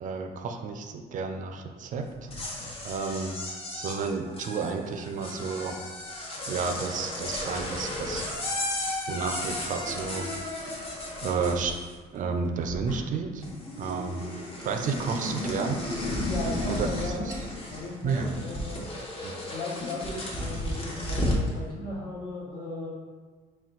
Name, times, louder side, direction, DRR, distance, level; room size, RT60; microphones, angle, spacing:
voice 1, 0.0-3.4 3.8-5.8 6.5-8.3 9.1-10.3 11.2-11.7 12.1-13.4 13.8-15.8 16.8-16.9 17.3-17.4 18.0-18.3 19.2-19.4, right 5 dB, 50° right, 5 dB, 0.4 m, -31 dB
sound 1, 2.1-12.2 12.4-13.2 13.4-21.5, left 1 dB, 35° left, 0.9 m, -34 dB
voice 2, 16.3-17.4 17.7-18.8 19.5-22.9, left 2 dB, 60° left, -5 dB, 1.3 m, -36 dB
4.2 x 2.3 x 3.7 m, 1.4 s
cardioid pair, 110°, 17 cm